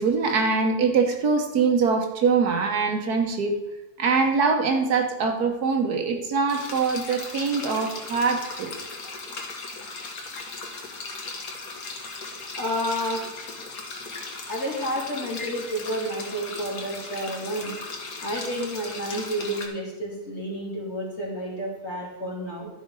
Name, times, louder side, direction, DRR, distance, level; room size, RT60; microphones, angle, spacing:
voice 1, 0.0-3.6 4.0-8.7, right 5 dB, 80° right, 4 dB, 1.7 m, -23 dB
sound 1, 6.5-19.7, left 3 dB, 70° left, 1.8 m, -37 dB
voice 2, 12.5-13.3 14.5-17.8 18.2-22.7, equal, 45° left, -4 dB, 3.0 m, -30 dB
12.0 x 5.2 x 5.4 m, 1.0 s
omnidirectional pair, 1.6 m